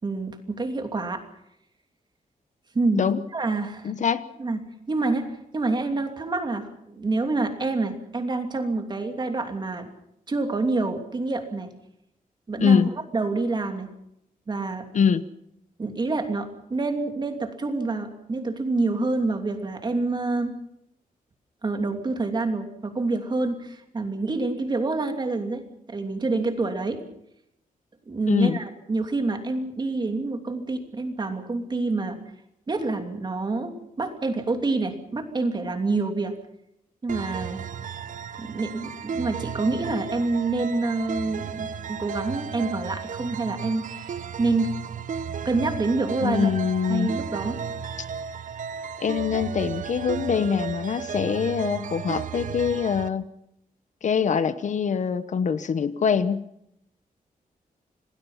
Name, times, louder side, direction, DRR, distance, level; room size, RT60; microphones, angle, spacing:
voice 1, 0.0-1.2 2.7-3.0 3.3-3.9 4.4-9.9 10.3-11.7 12.5-12.8 13.1-13.9 14.5-14.9 15.8-20.6 21.6-27.0 28.1-32.2 32.7-36.3 37.0-37.6 38.4-44.7 45.4-46.5 46.9-47.6, right 3 dB, 30° right, 5 dB, 2.9 m, -27 dB
voice 2, 3.8-4.2 12.6-12.9 14.9-15.3 28.3-28.6 46.2-47.1 49.0-53.3 54.0-56.4, left 6 dB, 55° left, 13 dB, 1.0 m, -23 dB
sound 1, 37.1-53.1, right 7 dB, 60° right, 0.9 m, -34 dB
27.5 x 19.5 x 5.8 m, 0.79 s
wide cardioid pair, 175°, 15 cm